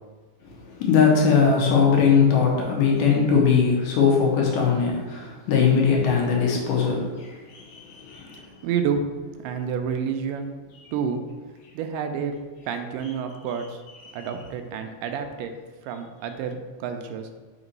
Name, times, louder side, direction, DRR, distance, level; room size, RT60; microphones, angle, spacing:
voice 1, 0.4-8.6 14.0-14.3, left 6 dB, 85° left, -2 dB, 2.7 m, -21 dB
voice 2, 8.3-9.0 9.4-10.5 10.9-11.2 11.7-12.3 12.7-13.8 14.1-15.5 15.8-17.3, right 7 dB, 85° right, 6 dB, 2.2 m, -29 dB
6.0 x 3.0 x 5.2 m, 1.3 s
omnidirectional pair, 3.7 m